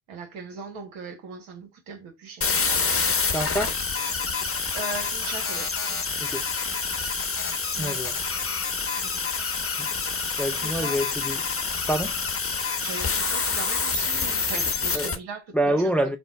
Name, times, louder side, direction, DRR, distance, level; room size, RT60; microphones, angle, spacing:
voice 1, 0.1-3.3 4.7-6.0 7.7-8.1 8.9-9.2 10.0-11.0 12.8-15.9, right 5 dB, 75° right, 1.4 m, -40 dB
sound 1, 2.4-15.1, left 5 dB, 30° left, 1.0 m, -27 dB
voice 2, 3.3-3.8 6.2-6.4 7.8-8.1 10.4-11.4 11.9-12.1 14.9-15.1 15.5-16.2, right 1 dB, 5° left, 0.5 m, -26 dB
3.4 x 2.2 x 4.0 m
supercardioid pair, 60°, 45 cm